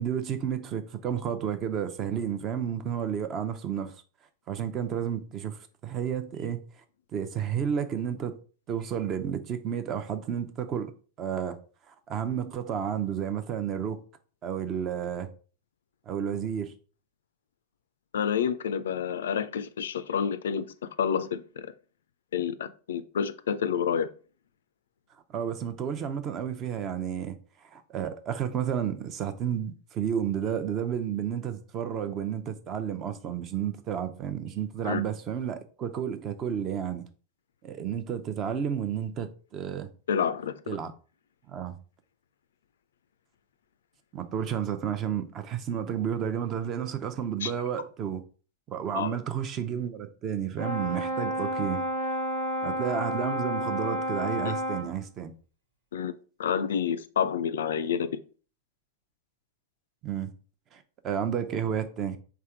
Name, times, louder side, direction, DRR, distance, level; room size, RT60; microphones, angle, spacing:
voice 1, 0.0-4.0 4.5-6.6 7.1-8.4 8.7-10.9 11.2-11.6 11.9-14.0 14.4-15.3 16.1-16.7 25.3-27.4 27.6-37.1 37.6-39.9 40.7-40.9 41.5-41.8 44.1-48.2 48.7-51.9 52.6-55.3 60.0-60.3 60.7-62.2, right 8 dB, 30° right, 0.6 m, -31 dB
voice 2, 18.1-20.7 21.0-21.7 22.3-24.1 34.8-35.0 40.1-40.8 47.4-47.5 48.9-49.1 55.9-58.2, left 7 dB, 65° left, 0.3 m, -29 dB
Brass instrument, 50.6-55.0, equal, 70° right, 1.7 m, -30 dB
3.5 x 3.4 x 4.5 m
figure-of-eight pair, 90°, 0 cm